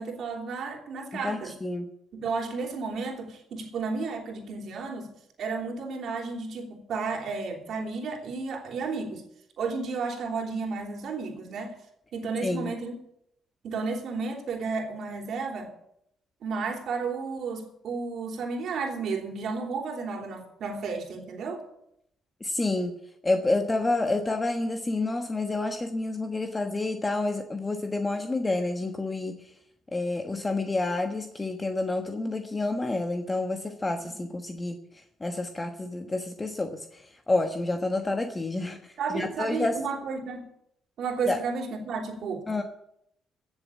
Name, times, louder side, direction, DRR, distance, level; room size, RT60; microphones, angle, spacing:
voice 1, 0.0-1.5 2.1-5.1 5.4-9.2 9.6-11.7 12.1-12.9 13.6-15.7 16.4-21.6 34.0-34.2 39.0-40.5 41.0-42.6, right 4 dB, 70° right, 3.2 m, -32 dB
voice 2, 1.1-1.9 12.4-12.7 22.4-23.0 23.2-29.5 29.9-39.8 41.3-41.4 42.5-42.6, left 2 dB, 20° left, 1.2 m, -29 dB
15.5 x 7.1 x 8.4 m
cardioid pair, 90°, 0 cm